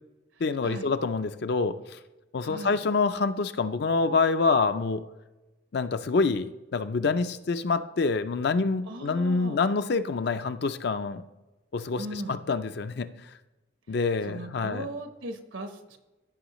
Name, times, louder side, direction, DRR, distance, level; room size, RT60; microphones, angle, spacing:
voice 1, 0.4-2.0 2.3-5.0 5.7-11.2 11.7-13.1 13.9-14.9, left 4 dB, 55° left, 11 dB, 0.4 m, -26 dB
voice 2, 2.4-2.8 8.9-9.6 12.0-12.4 14.3-16.0, right 1 dB, 85° right, 6 dB, 1.1 m, -38 dB
15.0 x 5.5 x 3.1 m, 1.1 s
head